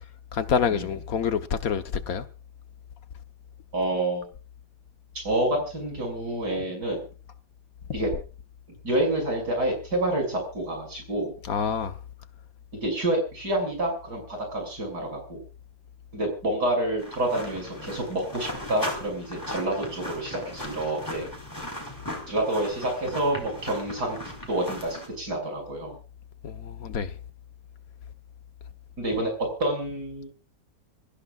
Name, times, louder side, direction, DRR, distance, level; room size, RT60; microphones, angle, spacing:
voice 1, 0.3-2.2 11.5-11.9 26.4-27.1, left 6 dB, 60° left, 1.5 m, -27 dB
voice 2, 3.7-4.3 5.2-7.0 7.9-8.1 8.8-11.3 12.8-15.4 16.1-21.3 22.3-26.0 29.0-30.3, right 1 dB, 70° right, 7.0 m, -28 dB
sound 1, 17.0-25.1, equal, 10° left, 4.4 m, -38 dB
25.5 x 15.5 x 2.5 m
omnidirectional pair, 1.8 m